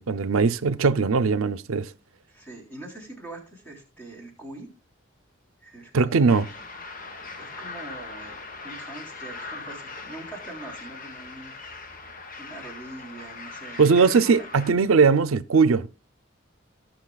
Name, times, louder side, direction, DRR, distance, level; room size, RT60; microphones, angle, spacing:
voice 1, 0.0-1.9 5.9-6.5 13.8-15.9, right 5 dB, 90° right, 0.5 m, -20 dB
voice 2, 2.3-4.7 5.6-6.6 7.4-11.5 11.9-14.5, right 2 dB, 10° left, 3.5 m, -43 dB
sound 1, 6.3-14.7, left 3 dB, 45° left, 1.2 m, -40 dB
18.0 x 6.2 x 2.3 m
head